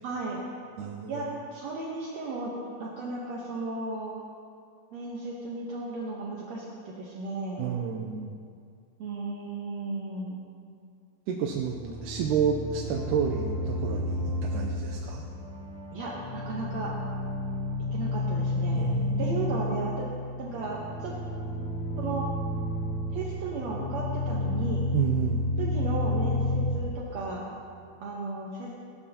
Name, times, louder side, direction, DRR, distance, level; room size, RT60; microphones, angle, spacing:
voice 1, 0.0-0.4 1.1-2.5 2.8-4.1 4.9-7.8 9.0-10.5 11.8-11.9 15.9-16.9 17.9-18.9 19.2-20.1 20.4-21.1 22.0-22.3 23.1-24.9 25.6-27.6 28.0-28.7, right 3 dB, 65° right, -4 dB, 2.1 m, -35 dB
voice 2, 0.8-1.3 7.6-8.3 11.3-11.8 12.0-15.2 18.7-19.5 24.9-25.5, right 7 dB, 80° right, 1 dB, 2.2 m, -30 dB
sound 1, 11.4-26.7, left 2 dB, 25° right, 2.5 m, -31 dB
17.0 x 12.0 x 2.9 m, 2.3 s
omnidirectional pair, 3.7 m